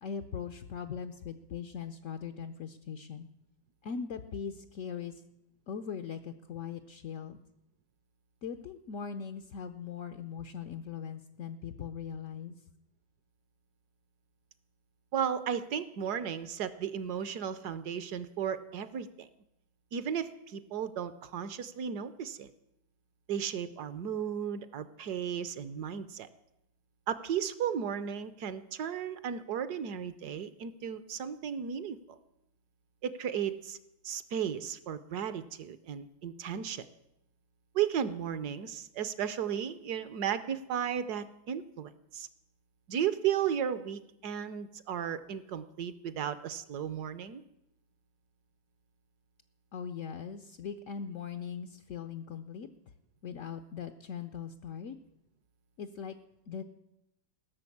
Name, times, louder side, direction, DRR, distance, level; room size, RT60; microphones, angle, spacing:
voice 1, 0.0-3.3 3.8-5.2 5.7-7.4 8.4-12.6 49.7-52.7 53.2-55.0 55.8-56.2 56.5-56.6, left 7 dB, 75° left, 7 dB, 0.7 m, -40 dB
voice 2, 15.1-19.3 19.9-22.5 23.3-26.3 27.1-32.2 33.0-33.8 34.0-36.9 37.7-42.3 42.9-47.4, right 8 dB, 65° right, 13 dB, 1.1 m, -34 dB
16.5 x 6.6 x 8.4 m, 0.84 s
omnidirectional pair, 2.1 m